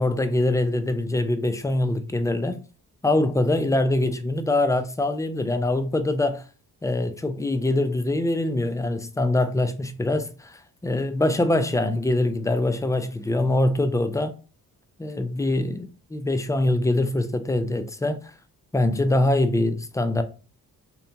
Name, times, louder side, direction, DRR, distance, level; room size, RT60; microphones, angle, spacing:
voice 1, 0.0-2.6 3.0-6.4 6.8-14.3 15.0-18.2 18.7-20.2, left 2 dB, 10° left, 0.3 m, -23 dB
2.8 x 2.1 x 2.6 m
cardioid pair, 55°, 38 cm